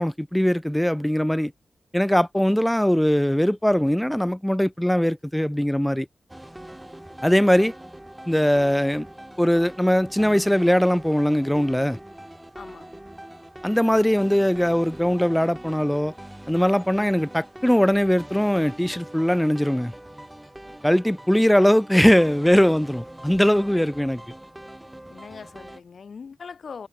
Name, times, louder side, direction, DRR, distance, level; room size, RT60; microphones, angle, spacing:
voice 1, 0.0-1.5 1.9-6.1 7.2-7.7 8.3-9.1 9.4-12.0 13.6-16.1 16.5-19.9 20.8-24.2, equal, 5° left, 0.4 m, -20 dB
sound 1, 6.3-25.8, right 1 dB, 10° right, 1.0 m, -43 dB
voice 2, 12.6-12.9 25.1-26.9, left 5 dB, 70° left, 0.6 m, -41 dB
cardioid pair, 50°, 0 cm